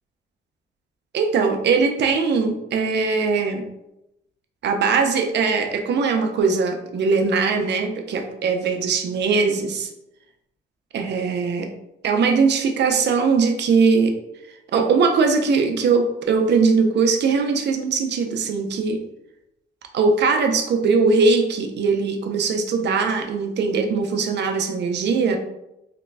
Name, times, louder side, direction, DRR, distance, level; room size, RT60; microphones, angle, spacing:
voice 1, 1.1-3.6 4.6-9.9 10.9-11.7 12.0-14.1 14.7-19.0 19.9-25.4, right 4 dB, 60° right, 4 dB, 0.6 m, -20 dB
3.9 x 3.0 x 2.2 m, 0.88 s
cardioid pair, 90°, 20 cm